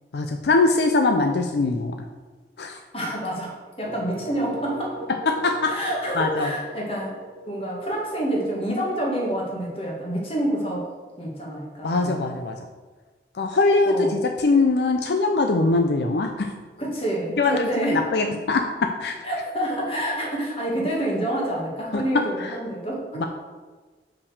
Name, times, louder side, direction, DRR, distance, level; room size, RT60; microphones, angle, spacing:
voice 1, 0.1-2.0 2.6-2.8 5.3-5.7 6.2-6.5 11.8-12.5 13.3-16.5 17.4-19.2 21.9-22.0 22.4-22.6 23.2-23.3, left 3 dB, 75° left, 5 dB, 0.5 m, -22 dB
voice 2, 2.9-5.0 5.6-7.2 7.4-10.9 11.2-12.2 13.8-14.2 16.8-18.1 19.2-23.3, right 1 dB, 35° left, -2 dB, 1.8 m, -28 dB
sound 1, 3.8-9.7, right 1 dB, 65° right, 1.1 m, -40 dB
5.8 x 5.1 x 6.4 m, 1.4 s
head